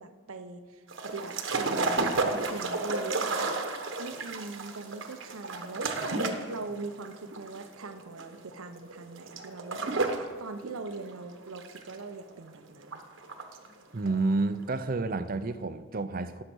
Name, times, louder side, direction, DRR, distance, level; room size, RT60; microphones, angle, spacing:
voice 1, 0.0-3.6 4.0-13.0, right 3 dB, 85° right, 9 dB, 0.9 m, -41 dB
sound 1, 0.9-10.3 10.6-12.4 12.8-13.7 14.0-14.1, right 3 dB, 65° right, 1.2 m, -32 dB
voice 2, 13.9-16.4, right 3 dB, 45° right, 12 dB, 0.6 m, -30 dB
17.5 x 6.6 x 6.2 m, 1.5 s
head